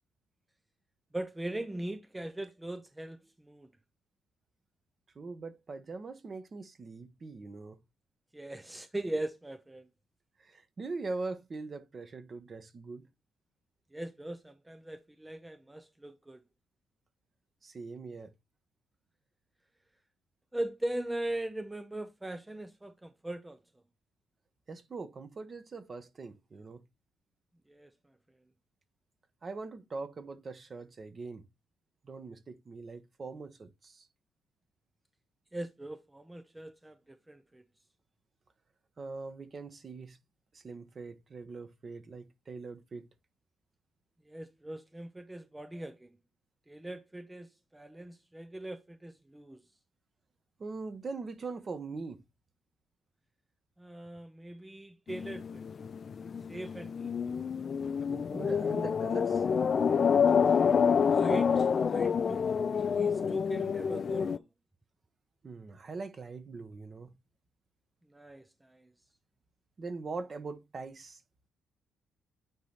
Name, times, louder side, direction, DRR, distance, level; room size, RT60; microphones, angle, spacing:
voice 1, 1.1-3.7 8.3-9.9 13.9-16.4 20.5-23.6 27.7-27.9 35.5-37.6 44.3-46.2 46.7-49.6 53.8-55.6 56.5-57.1 61.1-61.5 61.9-62.6 62.9-64.5 68.1-68.9, right 1 dB, 10° right, 0.6 m, -40 dB
voice 2, 5.1-7.8 10.4-13.1 17.6-18.3 24.7-26.8 29.4-31.4 32.0-34.1 39.0-40.2 40.5-43.1 50.6-52.2 58.1-59.4 65.4-67.1 69.8-71.2, right 3 dB, 40° right, 1.1 m, -42 dB
sound 1, 55.1-64.4, left 6 dB, 45° left, 0.5 m, -28 dB
9.3 x 3.2 x 4.1 m
cardioid pair, 90°, 0 cm